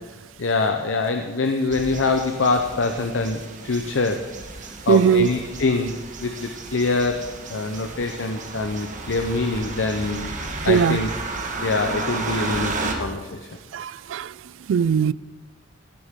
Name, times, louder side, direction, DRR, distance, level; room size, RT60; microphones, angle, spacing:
voice 1, 0.4-4.2 4.9-5.9 6.2-7.2 7.5-10.4 10.6-11.1 11.6-13.4, left 3 dB, 75° left, 0.8 m, -24 dB
sound 1, 1.7-12.9, right 3 dB, 40° right, 1.5 m, -33 dB
voice 2, 4.9-5.3 10.7-11.0 13.7-14.3 14.7-15.1, right 7 dB, 75° right, 0.3 m, -19 dB
16.0 x 11.0 x 3.7 m
head